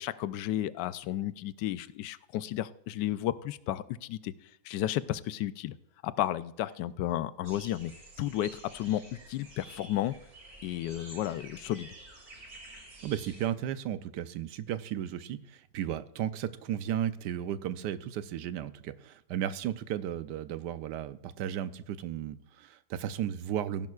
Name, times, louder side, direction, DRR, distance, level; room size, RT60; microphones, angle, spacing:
voice 1, 0.0-4.3 4.6-5.8 6.0-7.9 8.2-10.1 10.6-11.9, left 13 dB, 85° left, 15 dB, 1.2 m, -33 dB
sound 1, 7.4-13.5, right 2 dB, 60° right, 3.0 m, -50 dB
voice 2, 13.0-23.9, right 10 dB, 85° right, 13 dB, 1.2 m, -34 dB
16.5 x 10.5 x 2.4 m, 0.83 s
omnidirectional pair, 1.8 m